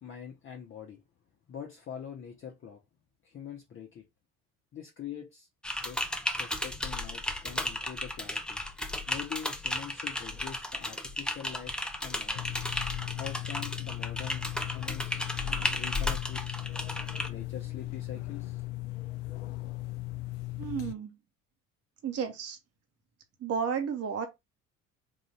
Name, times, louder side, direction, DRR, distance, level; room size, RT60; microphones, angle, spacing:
voice 1, 0.0-1.0 1.5-2.8 3.2-4.0 4.7-6.1 6.4-8.6 9.1-11.7 12.0-12.6 13.1-15.1 15.7-16.4 17.3-18.6, left 8 dB, 30° left, 0.8 m, -44 dB
Typing, 5.6-17.3, left 1 dB, ahead, 0.4 m, -34 dB
sound 1, 12.4-20.9, left 17 dB, 60° left, 0.5 m, -38 dB
voice 2, 20.6-21.1 22.0-22.6 23.4-24.3, right 7 dB, 35° right, 1.0 m, -32 dB
3.8 x 2.6 x 3.2 m
figure-of-eight pair, 55°, 41 cm